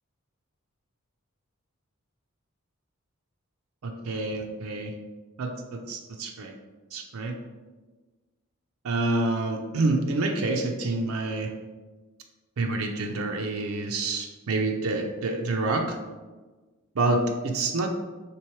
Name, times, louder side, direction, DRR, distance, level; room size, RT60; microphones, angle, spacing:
voice 1, 3.8-4.9 5.4-6.5 6.9-7.3 8.8-11.5 12.6-16.0 16.9-17.9, right 2 dB, 75° right, 3 dB, 0.5 m, -27 dB
3.4 x 3.0 x 4.5 m, 1.3 s
head